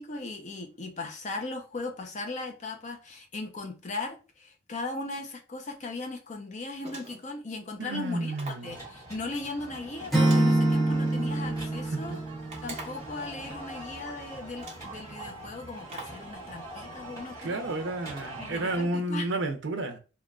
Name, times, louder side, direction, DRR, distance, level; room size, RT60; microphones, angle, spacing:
voice 1, 0.0-8.3 8.6-12.2 12.6-17.8 18.4-19.3, left 2 dB, 40° left, 0.6 m, -38 dB
sound 1, 6.8-7.4 8.3-8.7 10.2-11.2 12.5-13.1 14.0-14.1 14.6-15.0 15.9-16.3, right 3 dB, 35° right, 1.0 m, -44 dB
voice 2, 7.8-8.8 11.9-12.2 17.4-20.0, right 2 dB, 70° right, 0.6 m, -31 dB
sound 2, 8.6-18.9, right 1 dB, 20° left, 1.3 m, -43 dB
Acoustic guitar / Strum, 10.1-13.2, right 1 dB, ahead, 1.1 m, -25 dB
3.6 x 2.3 x 2.3 m
head